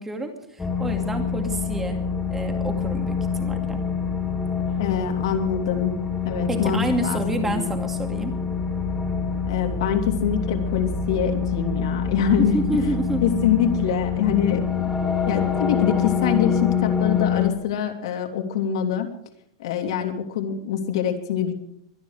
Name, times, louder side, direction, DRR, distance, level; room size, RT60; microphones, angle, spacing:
voice 1, 0.0-2.0 2.3-3.8 6.5-8.3 12.4-13.2 14.9-15.0, right 2 dB, 10° right, 4 dB, 2.4 m, -29 dB
sound 1, 0.6-17.5, left 6 dB, 10° left, 3.1 m, -26 dB
voice 2, 4.8-5.9 6.2-7.7 9.5-12.6 13.2-14.8 15.3-19.1 19.6-21.5, left 8 dB, 65° left, 3 dB, 3.1 m, -24 dB
24.0 x 10.5 x 5.0 m, 0.71 s
supercardioid pair, 150°, 3 cm